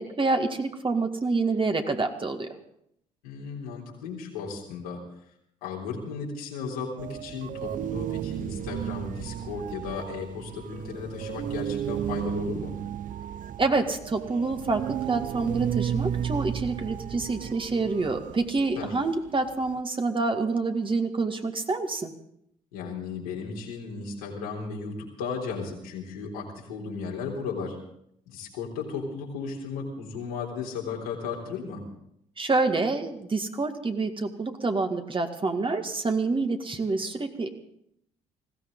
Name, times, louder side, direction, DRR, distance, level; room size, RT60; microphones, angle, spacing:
voice 1, 0.0-2.5 13.6-22.1 32.4-37.5, right 3 dB, 30° right, 5 dB, 2.0 m, -27 dB
voice 2, 3.2-5.0 5.6-12.8 18.8-18.9 22.7-27.8 28.3-31.8, left 5 dB, 85° left, -2 dB, 3.7 m, -35 dB
sound 1, 7.0-19.8, right 10 dB, 50° right, 0.6 m, -33 dB
20.0 x 16.0 x 3.9 m, 0.73 s
hypercardioid pair, 55°, 18 cm